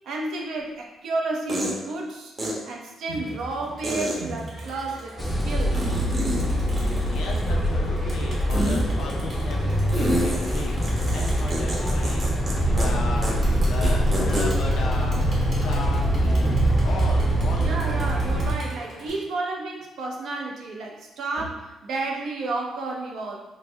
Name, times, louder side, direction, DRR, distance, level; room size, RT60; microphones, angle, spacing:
voice 1, 0.0-2.3 2.6-5.8 17.6-23.4, right 2 dB, 75° right, 0 dB, 0.6 m, -31 dB
sound 1, 0.6-0.7 1.5-1.8 2.4-2.5 3.8-4.2 5.7-6.4 6.7-7.6 8.5-8.8 9.9-12.5 12.8-12.9 13.2-13.3 13.6-14.5, right 1 dB, 35° right, 0.8 m, -28 dB
Crowd, 3.1-19.1, right 2 dB, 55° right, 1.3 m, -38 dB
sound 2, 5.2-18.5, equal, 20° left, 0.5 m, -24 dB
voice 2, 6.9-17.8 21.4-21.5, left 3 dB, 85° left, 0 dB, 0.6 m, -36 dB
3.4 x 2.1 x 3.3 m, 1.0 s
cardioid pair, 90°, 0 cm